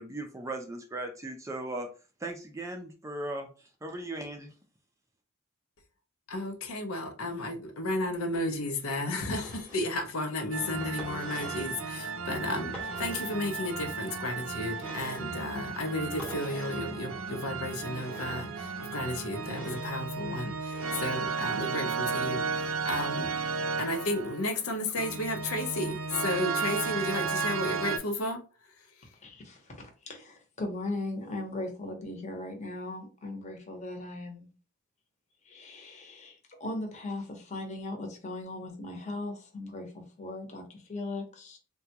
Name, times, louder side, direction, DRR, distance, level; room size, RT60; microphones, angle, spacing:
voice 1, 0.0-1.9 2.2-4.5, right 2 dB, 15° right, 0.4 m, -38 dB
voice 2, 6.3-28.4, left 1 dB, 80° left, 0.6 m, -33 dB
sound 1, 9.2-9.8 10.8-11.8 12.7-13.4 14.7-15.4 16.2-16.9 17.8-18.5 19.4-19.9 20.7-21.2, left 1 dB, 5° left, 0.8 m, -45 dB
sound 2, 10.5-28.0, right 5 dB, 70° right, 0.5 m, -34 dB
voice 3, 29.2-34.5 35.4-41.6, left 2 dB, 35° left, 0.8 m, -38 dB
3.5 x 2.2 x 2.8 m
head